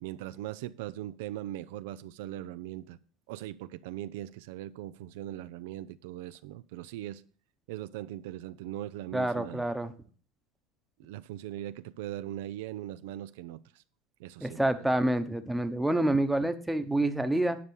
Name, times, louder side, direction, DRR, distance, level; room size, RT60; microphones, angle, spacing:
voice 1, 0.0-3.0 3.3-7.2 7.7-9.7 11.0-13.6 14.2-14.6, right 13 dB, 80° right, 13 dB, 0.5 m, -40 dB
voice 2, 9.1-9.9 14.4-17.6, right 1 dB, 5° right, 8 dB, 1.0 m, -27 dB
9.9 x 5.4 x 6.5 m, 0.42 s
supercardioid pair, 120°, 0 cm